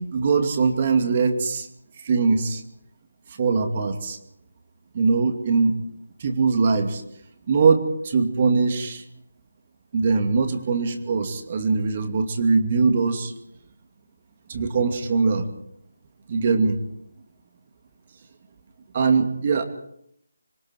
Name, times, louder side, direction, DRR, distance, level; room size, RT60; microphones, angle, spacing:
voice 1, 0.0-1.7 2.0-2.6 3.3-4.2 4.9-5.7 6.2-7.0 7.5-9.0 9.9-13.3 14.5-15.5 16.3-16.8 18.9-19.6, right 4 dB, 35° right, 5 dB, 2.4 m, -21 dB
26.0 x 23.0 x 4.6 m, 0.74 s
figure-of-eight pair, 165°, 0 cm